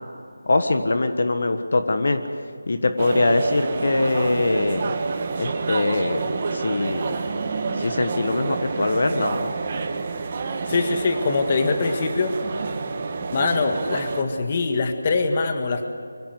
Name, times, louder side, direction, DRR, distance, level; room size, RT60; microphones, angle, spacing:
voice 1, 0.5-2.2 2.7-5.0 5.4-7.1 7.8-9.5, left 2 dB, 55° left, 7 dB, 1.4 m, -22 dB
sound 1, 3.0-14.2, right 4 dB, 30° right, 1.5 m, -28 dB
voice 2, 10.7-12.3 13.3-15.9, left 3 dB, 30° left, 6 dB, 1.7 m, -23 dB
24.5 x 16.5 x 7.9 m, 2.4 s
figure-of-eight pair, 165°, 0 cm